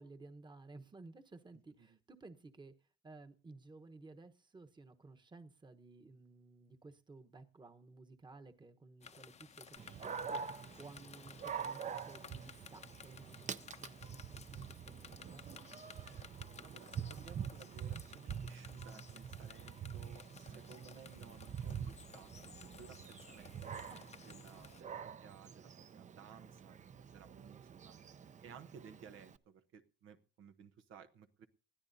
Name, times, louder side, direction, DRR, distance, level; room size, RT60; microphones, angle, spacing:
voice 1, 0.0-15.4 23.9-24.0 24.5-24.7, right 3 dB, 20° right, 1.1 m, -56 dB
sound 1, 9.0-24.8, left 6 dB, 35° left, 0.7 m, -56 dB
Dog, 9.8-29.4, right 7 dB, 40° right, 0.6 m, -46 dB
voice 2, 16.6-22.3 22.6-23.8 24.3-28.0 28.4-31.5, right 7 dB, 90° right, 1.0 m, -57 dB
20.0 x 12.5 x 2.7 m
cardioid pair, 90°, 20 cm